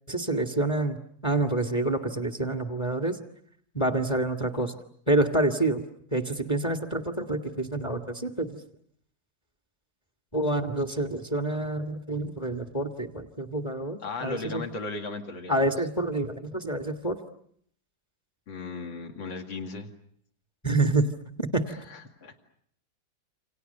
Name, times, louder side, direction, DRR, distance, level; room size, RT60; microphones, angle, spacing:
voice 1, 0.1-1.0 1.2-3.2 3.7-4.7 5.1-5.8 6.1-8.6 10.3-14.6 15.5-17.2 20.6-21.1 21.4-21.6, right 2 dB, 15° left, 5 dB, 1.5 m, -27 dB
voice 2, 14.0-15.7 18.5-19.9 21.7-22.3, left 3 dB, 80° left, 3 dB, 3.2 m, -36 dB
29.0 x 26.5 x 6.7 m, 0.65 s
omnidirectional pair, 2.1 m